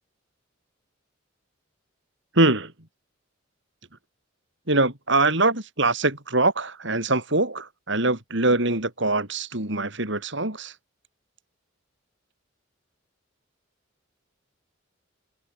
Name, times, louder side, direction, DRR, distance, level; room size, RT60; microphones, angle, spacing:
voice 1, 2.4-2.7 4.7-10.7, right 2 dB, 60° right, 5.7 m, -23 dB
head